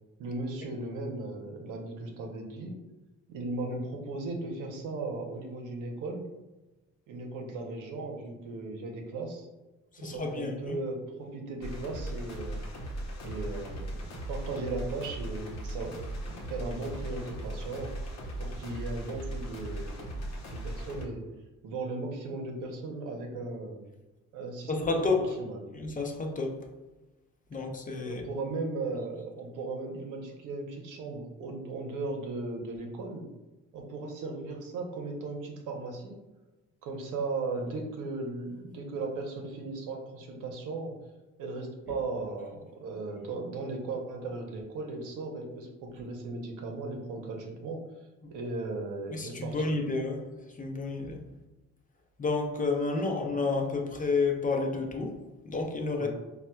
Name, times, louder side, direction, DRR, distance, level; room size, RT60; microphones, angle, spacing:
voice 1, 0.2-2.7 3.3-6.3 7.1-9.5 10.0-12.7 13.2-16.0 16.2-17.9 18.4-21.2 21.6-23.9 24.3-25.1 25.4-25.6 28.0-33.2 33.7-36.2 36.8-40.9 41.4-47.8 48.3-49.7 53.0-53.1 55.9-56.1, right 3 dB, 90° right, 1 dB, 0.7 m, -37 dB
voice 2, 9.9-10.8 24.7-25.3 25.7-26.7 27.5-28.2 48.2-48.3 49.1-50.3 50.5-51.2 52.2-55.2 55.4-56.1, left 3 dB, 25° left, 2 dB, 0.5 m, -30 dB
sound 1, 11.6-21.0, right 1 dB, 60° left, 0.8 m, -38 dB
4.1 x 2.2 x 2.2 m, 1.1 s
cardioid pair, 90°, 30 cm